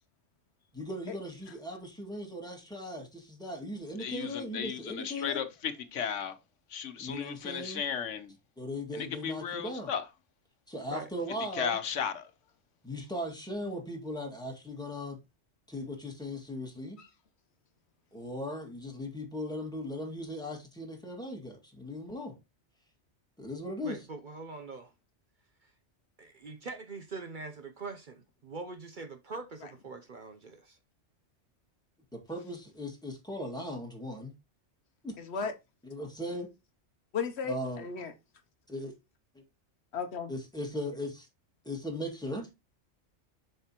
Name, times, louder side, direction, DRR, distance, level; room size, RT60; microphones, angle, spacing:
voice 1, 0.7-5.4 7.0-7.8 8.6-9.9 10.7-11.8 12.8-15.2 15.7-17.0 18.1-22.4 23.4-24.0 32.1-34.3 35.0-35.2 35.8-36.5 37.5-37.9 38.7-38.9 40.3-41.3 41.7-42.5, left 1 dB, 5° left, 2.0 m, -38 dB
voice 2, 4.0-6.4 6.7-8.3 8.9-10.1 11.5-12.3, left 7 dB, 85° left, 1.3 m, -35 dB
voice 3, 23.8-24.9 26.2-30.8, right 3 dB, 45° right, 0.8 m, -43 dB
voice 4, 35.2-35.5 37.1-38.1 39.9-40.3, left 5 dB, 65° left, 1.0 m, -35 dB
7.3 x 5.7 x 2.9 m
omnidirectional pair, 1.2 m